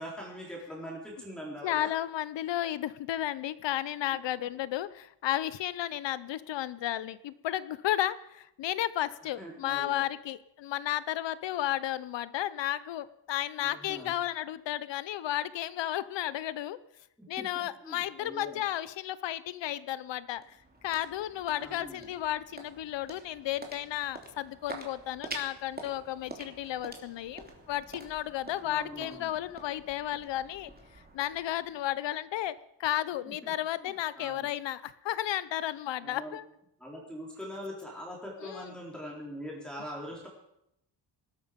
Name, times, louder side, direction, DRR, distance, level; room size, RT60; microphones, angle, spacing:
voice 1, 0.0-1.9 4.1-4.2 9.4-10.0 13.6-14.2 17.2-18.7 21.5-22.1 28.6-29.4 33.3-33.5 33.8-34.5 36.0-36.4 36.8-40.3, equal, ahead, -4 dB, 4.0 m, -42 dB
voice 2, 1.6-16.8 17.3-20.6 20.8-30.7 31.1-36.5 38.4-38.7, left 12 dB, 70° left, 16 dB, 0.8 m, -33 dB
sound 1, 20.2-32.4, right 2 dB, 20° right, 3.0 m, -47 dB
19.5 x 12.5 x 5.2 m, 0.80 s
cardioid pair, 120°, 45 cm